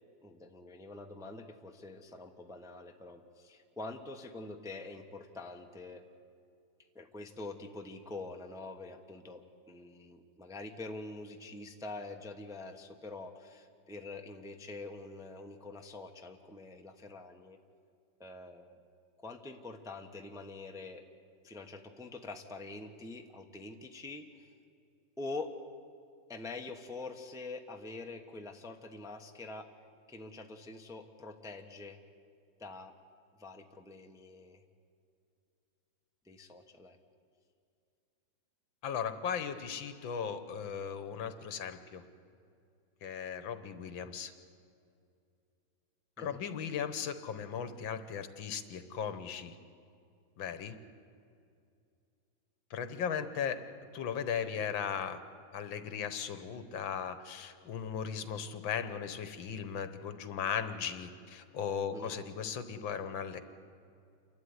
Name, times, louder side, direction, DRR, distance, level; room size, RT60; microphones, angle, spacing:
voice 1, 0.2-6.0 6.9-17.6 18.2-18.8 19.2-21.0 21.4-24.5 25.2-25.6 26.3-29.7 30.1-32.0 32.6-33.0 33.4-34.6 36.2-37.0 46.2-46.4 61.9-62.1, left 3 dB, ahead, 4 dB, 0.8 m, -45 dB
voice 2, 38.8-42.0 43.0-44.3 46.2-49.6 50.4-50.8 52.7-53.6 53.9-55.2 55.5-63.4, left 7 dB, 75° left, 11 dB, 1.9 m, -37 dB
28.5 x 12.5 x 9.7 m, 2.4 s
omnidirectional pair, 2.1 m